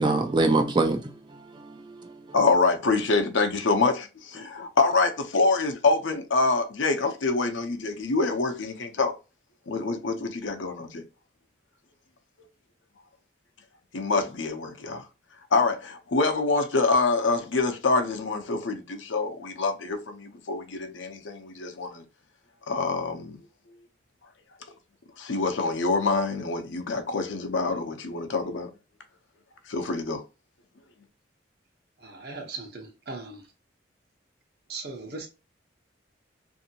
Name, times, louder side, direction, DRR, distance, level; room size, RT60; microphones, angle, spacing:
voice 1, 0.0-2.2, right 2 dB, 25° right, 0.3 m, -25 dB
voice 2, 2.3-9.1 9.7-11.0 13.9-15.0 15.5-22.0 22.7-23.4 25.2-28.7 29.7-30.2, left 3 dB, 80° left, 0.7 m, -26 dB
voice 3, 32.0-33.4 34.7-35.3, right 3 dB, 55° right, 0.9 m, -38 dB
2.7 x 2.7 x 2.7 m
head